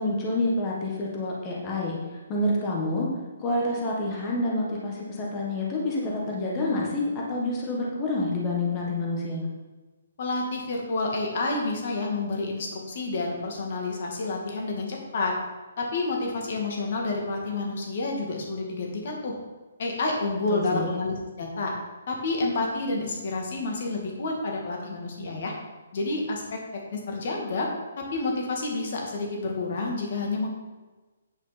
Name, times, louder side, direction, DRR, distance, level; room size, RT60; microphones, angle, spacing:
voice 1, 0.0-3.1 3.4-9.5 20.5-20.9, left 2 dB, 15° left, -3 dB, 1.5 m, -28 dB
voice 2, 10.2-15.3 15.8-19.4 19.8-21.7 22.1-25.5 25.9-27.7 28.0-30.5, left 3 dB, 45° left, 0 dB, 2.0 m, -29 dB
9.4 x 6.3 x 5.2 m, 1.2 s
hypercardioid pair, 175°, 0 cm